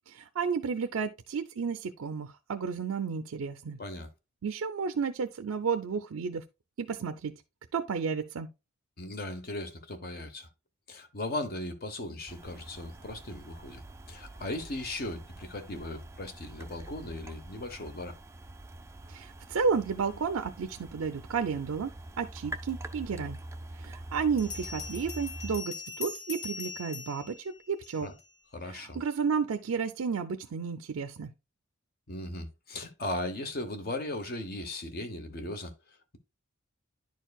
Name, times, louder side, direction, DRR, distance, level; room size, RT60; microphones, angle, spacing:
voice 1, 0.1-3.8 4.4-6.4 6.8-7.3 7.7-8.5 19.1-23.4 23.7-28.1 28.6-31.3, right 5 dB, 80° right, 0.5 m, -32 dB
voice 2, 9.0-10.5 10.9-18.2 28.0-28.1 28.5-29.0 32.1-36.2, left 1 dB, 45° left, 0.9 m, -38 dB
sound 1, 12.3-25.6, right 1 dB, 15° right, 0.3 m, -45 dB
Bell, 24.4-28.3, left 4 dB, 75° left, 2.0 m, -41 dB
10.5 x 4.5 x 2.3 m
head